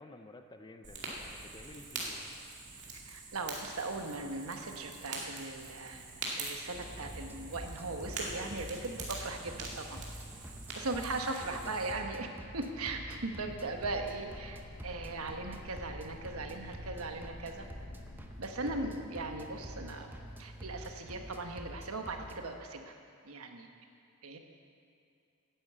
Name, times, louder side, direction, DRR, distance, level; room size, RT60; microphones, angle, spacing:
voice 1, 0.0-2.2 11.4-11.7 18.6-18.9, left 2 dB, 20° left, 7 dB, 0.6 m, -52 dB
Fire, 0.8-11.9, right 3 dB, 55° right, 2.4 m, -44 dB
voice 2, 2.9-6.0 6.4-10.0 10.7-17.7 18.4-20.1 20.4-22.9 23.2-23.7 24.2-24.4, right 2 dB, 80° right, 4 dB, 1.2 m, -39 dB
sound 1, 6.7-22.4, equal, 10° right, 0.8 m, -47 dB
sound 2, 13.1-18.3, left 2 dB, 70° left, 0.8 m, -52 dB
11.5 x 9.2 x 8.1 m, 2.4 s
head